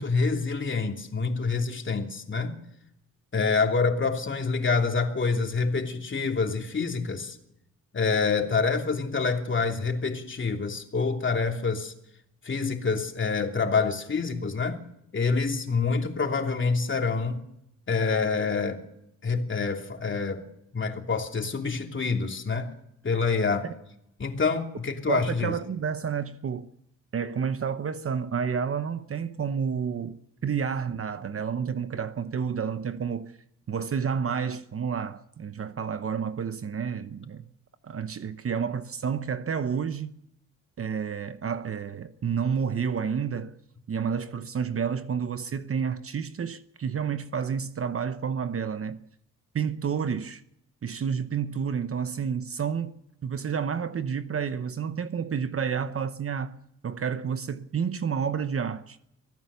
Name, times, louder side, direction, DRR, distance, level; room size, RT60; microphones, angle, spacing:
voice 1, 0.0-2.5 3.3-7.4 7.9-11.9 12.4-14.8 15.1-17.4 17.9-18.8 19.2-20.4 20.7-22.7 23.0-23.7 24.2-25.6, left 4 dB, 35° left, 3.0 m, -27 dB
voice 2, 25.1-26.7 27.1-33.3 33.7-37.4 37.8-40.2 40.8-43.6 43.9-49.0 49.5-50.4 50.8-59.0, right 7 dB, 45° right, 1.0 m, -30 dB
24.5 x 15.5 x 6.9 m
cardioid pair, 105°, 33 cm